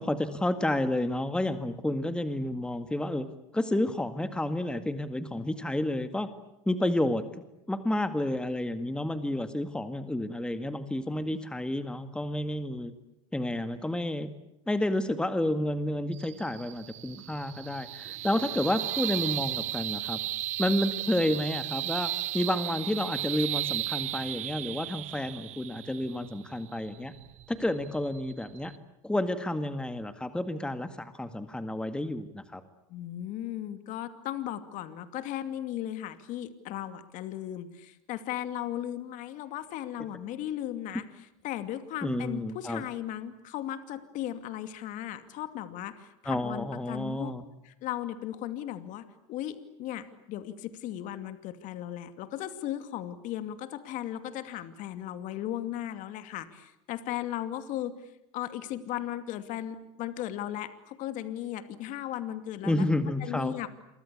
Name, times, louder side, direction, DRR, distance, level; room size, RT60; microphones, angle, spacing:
voice 1, 0.0-3.3 3.5-6.3 6.7-7.3 7.7-12.9 13.3-14.3 14.7-20.2 20.6-22.1 22.3-27.1 27.5-28.7 29.0-32.6 42.0-42.8 46.3-47.4 62.6-63.5, left 1 dB, 5° left, 10 dB, 1.9 m, -30 dB
sound 1, 16.1-28.8, right 15 dB, 45° right, 1.1 m, -35 dB
voice 2, 32.9-41.0 41.4-47.3 47.6-58.0 58.3-62.8 63.2-63.7, left 12 dB, 55° left, 11 dB, 2.5 m, -36 dB
29.0 x 24.5 x 8.5 m, 0.85 s
supercardioid pair, 105°, 16 cm